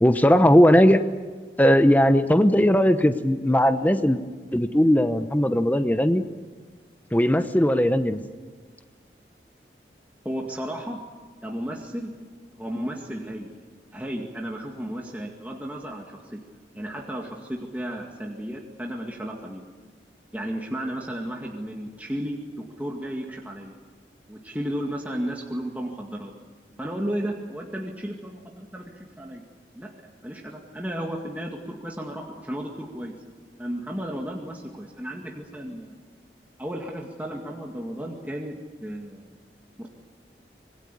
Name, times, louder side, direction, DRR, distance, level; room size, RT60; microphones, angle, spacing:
voice 1, 0.0-1.0 1.6-4.2 4.5-6.2 7.1-8.2, equal, 10° left, 9 dB, 0.9 m, -18 dB
voice 2, 10.2-11.0 11.4-12.1 12.6-13.5 13.9-16.4 16.7-19.6 20.3-23.7 24.3-26.3 26.8-29.4 29.7-29.9 30.2-33.1 33.6-36.0 36.6-38.5 38.8-39.4 39.8-39.9, equal, 10° right, -1 dB, 2.1 m, -33 dB
26.5 x 20.5 x 8.4 m, 1.4 s
head